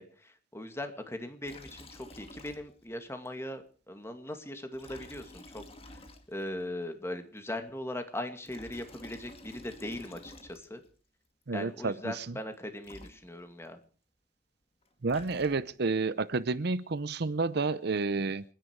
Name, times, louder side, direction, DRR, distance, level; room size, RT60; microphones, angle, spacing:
voice 1, 0.0-6.0 6.3-10.8 11.5-13.8, left 1 dB, 15° left, 7 dB, 2.2 m, -40 dB
Liquid, 1.4-3.0 3.2-3.3 4.7-6.6 8.2-10.9 12.5-12.6 12.8-13.7 14.8-15.9, left 1 dB, 30° left, 2.1 m, -51 dB
voice 2, 11.5-12.3 15.0-18.4, right 3 dB, 60° right, 15 dB, 0.7 m, -30 dB
29.5 x 10.5 x 4.7 m, 0.40 s
head